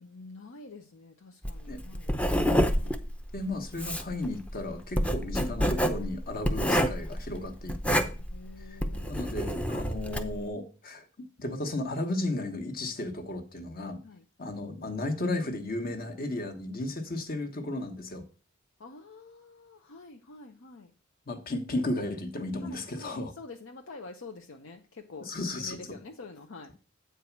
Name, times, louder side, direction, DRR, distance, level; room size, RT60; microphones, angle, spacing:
voice 1, 0.0-2.8 8.3-9.4 14.0-14.2 18.8-20.9 22.6-26.7, left 3 dB, 65° left, 4 dB, 0.7 m, -47 dB
Writing, 1.4-10.4, equal, 5° left, 0.6 m, -28 dB
voice 2, 3.3-8.1 8.7-8.8 9.1-11.1 11.4-14.0 14.4-18.2 21.3-23.3 25.2-25.8, left 2 dB, 45° left, 5 dB, 1.3 m, -34 dB
8.1 x 4.7 x 5.9 m, 0.35 s
head